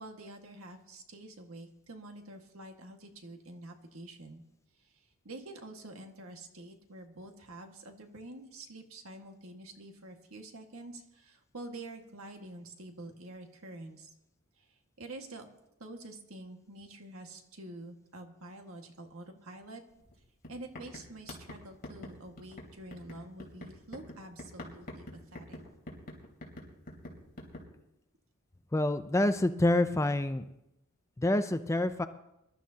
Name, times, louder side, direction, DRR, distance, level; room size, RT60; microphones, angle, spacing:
voice 1, 0.0-4.4 4.8-14.1 14.6-15.5 15.8-19.8 20.5-25.1 25.3-25.6, right 2 dB, 65° right, 3 dB, 1.8 m, -47 dB
sound 1, 20.0-20.1 20.4-27.7, left 1 dB, 40° left, 3.6 m, -46 dB
voice 2, 28.7-30.4 31.2-32.1, left 1 dB, 15° left, 10 dB, 0.4 m, -27 dB
24.0 x 12.5 x 2.8 m, 0.86 s
head